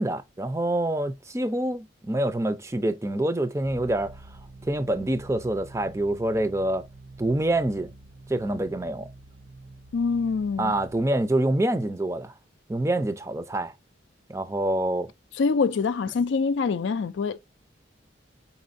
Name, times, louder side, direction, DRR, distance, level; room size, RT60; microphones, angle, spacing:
voice 1, 0.0-4.2 4.7-6.8 7.2-7.9 8.3-9.1 10.6-12.3 12.7-13.7 14.3-15.1, right 1 dB, 15° right, 0.4 m, -26 dB
sound 1, 3.6-11.0, right 2 dB, 65° right, 0.6 m, -47 dB
voice 2, 9.9-10.8 15.4-17.4, left 4 dB, 70° left, 0.4 m, -25 dB
4.5 x 4.2 x 2.5 m
head